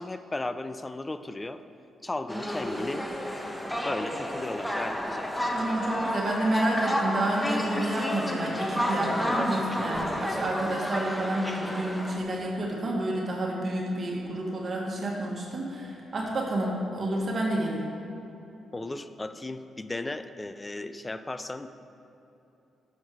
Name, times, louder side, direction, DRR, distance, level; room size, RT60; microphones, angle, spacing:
voice 1, 0.0-1.6 2.0-3.1 3.8-5.3 18.7-21.7, left 2 dB, 25° left, 11 dB, 0.5 m, -35 dB
sound 1, 2.3-12.2, equal, 10° left, 1.2 m, -31 dB
voice 2, 5.5-17.9, right 1 dB, 50° right, -2 dB, 1.7 m, -30 dB
11.5 x 6.6 x 4.8 m, 2.9 s
supercardioid pair, 55°, 0 cm